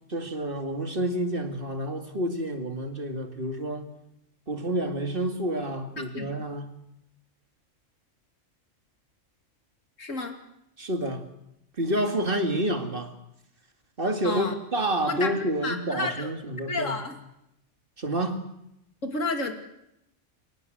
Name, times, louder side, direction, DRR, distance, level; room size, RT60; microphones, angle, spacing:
voice 1, 0.1-3.9 4.5-6.7 10.8-11.2 11.8-13.1 14.0-17.0 18.0-18.4, right 1 dB, 45° right, 6 dB, 2.4 m, -29 dB
voice 2, 6.1-6.5 10.0-10.4 14.2-14.5 15.1-16.3 16.7-17.2 19.0-19.5, left 3 dB, 80° left, 5 dB, 2.9 m, -31 dB
24.0 x 18.5 x 8.0 m, 0.81 s
omnidirectional pair, 1.3 m